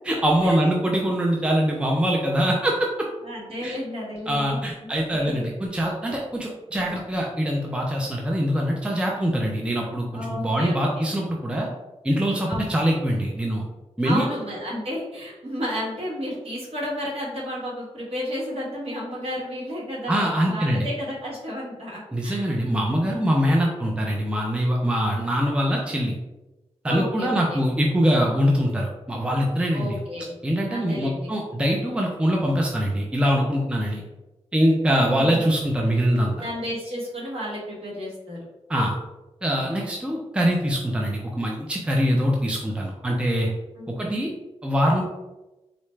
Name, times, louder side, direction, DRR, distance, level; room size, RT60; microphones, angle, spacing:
voice 1, 0.0-3.1 3.6-3.7 4.3-11.7 12.0-13.6 14.0-14.3 20.1-20.8 22.1-26.1 26.8-30.0 30.4-34.0 34.5-36.3 38.7-39.0 39.4-43.5 44.0-44.3 44.6-45.0, equal, 10° right, -1 dB, 0.4 m, -23 dB
voice 2, 3.2-5.3 10.1-11.1 12.5-12.9 14.0-22.6 22.9-23.2 26.9-27.6 29.7-30.4 30.7-31.3 35.0-35.5 36.4-38.4 39.6-39.9 43.8-44.2, equal, 60° right, -6 dB, 1.5 m, -32 dB
3.8 x 2.2 x 3.2 m, 1.0 s
wide cardioid pair, 95°, 12 cm